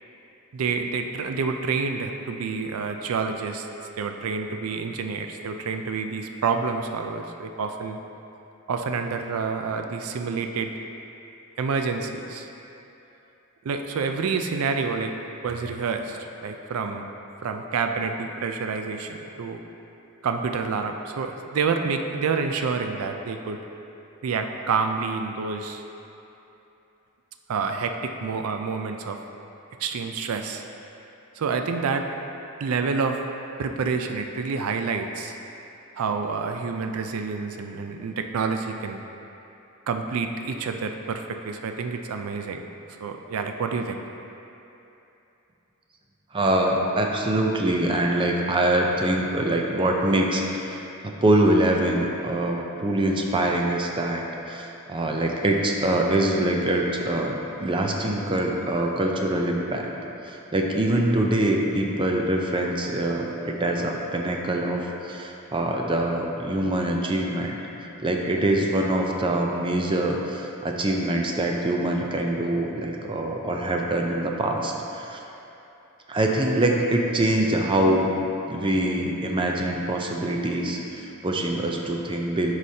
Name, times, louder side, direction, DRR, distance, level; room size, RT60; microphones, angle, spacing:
voice 1, 0.5-3.7 4.0-8.0 8.7-10.7 11.6-12.5 13.6-15.1 15.4-17.0 17.4-19.6 20.2-23.6 24.2-25.8 27.5-29.2 29.8-30.6 31.4-32.1 32.6-33.2 33.6-35.4 36.0-39.0 39.9-42.7 43.0-44.0, right 5 dB, 85° right, 5 dB, 0.4 m, -28 dB
voice 2, 46.3-59.9 60.2-67.6 68.0-75.2 76.1-78.1 78.5-82.5, right 1 dB, 25° right, 1 dB, 0.5 m, -24 dB
9.5 x 4.9 x 2.7 m, 2.9 s
head